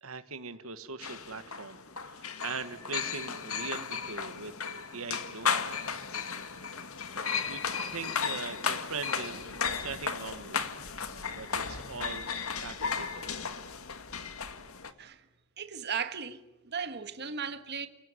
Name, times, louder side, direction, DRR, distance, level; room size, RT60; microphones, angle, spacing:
voice 1, 0.0-5.8 7.1-7.6 7.9-10.6 11.0-13.2, right 4 dB, 70° right, 1.5 m, -41 dB
sound 1, 1.0-14.9, left 6 dB, 70° left, 2.0 m, -35 dB
voice 2, 15.6-16.4 16.6-17.9, right 6 dB, 50° right, 1.7 m, -36 dB
29.5 x 18.0 x 9.9 m
head